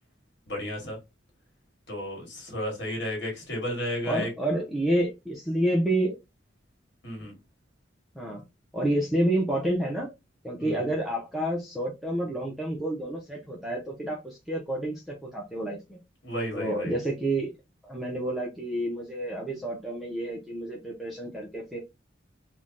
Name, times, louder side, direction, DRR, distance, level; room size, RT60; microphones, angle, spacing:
voice 1, 0.5-1.0 1.9-4.3 7.0-7.3 10.6-10.9 16.2-16.9, equal, 60° left, 1.4 m, -33 dB
voice 2, 4.0-6.1 8.1-8.4 8.7-10.1 10.4-16.0 16.5-17.5 17.8-21.8, right 1 dB, ahead, 0.5 m, -29 dB
3.2 x 2.1 x 2.5 m
head